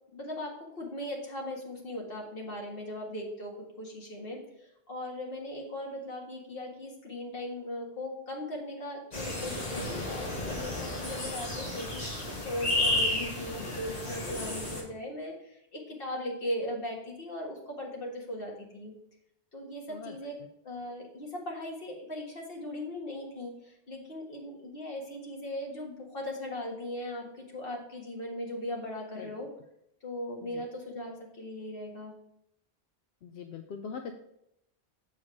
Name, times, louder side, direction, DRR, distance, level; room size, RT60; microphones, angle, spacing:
voice 1, 0.1-18.9 19.5-20.4 20.6-29.5 30.0-32.2, left 1 dB, 55° left, -1 dB, 1.8 m, -38 dB
sound 1, 9.1-14.8, left 1 dB, 40° left, 1.6 m, -32 dB
voice 2, 33.2-34.1, left 6 dB, 75° left, 5 dB, 0.8 m, -41 dB
7.2 x 4.5 x 4.7 m, 0.78 s
omnidirectional pair, 1.1 m